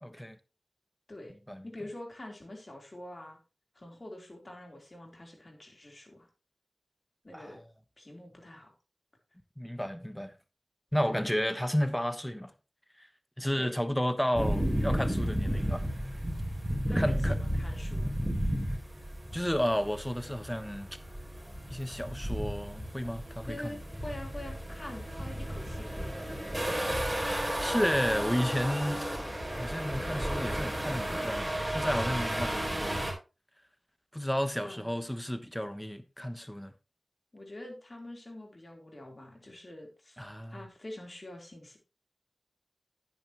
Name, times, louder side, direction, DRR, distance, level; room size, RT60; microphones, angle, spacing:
voice 1, 0.0-0.4 1.5-1.6 7.3-7.6 9.6-10.3 10.9-12.5 13.0-13.1 13.4-15.8 16.9-17.4 19.3-20.9 21.7-23.8 27.6-29.0 29.5-33.0 34.1-36.7 40.2-40.6, equal, 10° left, 1.2 m, -32 dB
voice 2, 1.6-3.4 3.8-6.3 7.2-7.6 8.0-8.7 11.0-11.5 13.6-13.7 16.9-18.1 23.5-26.9 34.6-35.0 37.3-40.2 40.5-41.8, left 1 dB, 45° left, 3.9 m, -45 dB
sound 1, 14.3-33.1, equal, 15° right, 4.2 m, -33 dB
10.0 x 9.3 x 3.1 m
cardioid pair, 45°, 0 cm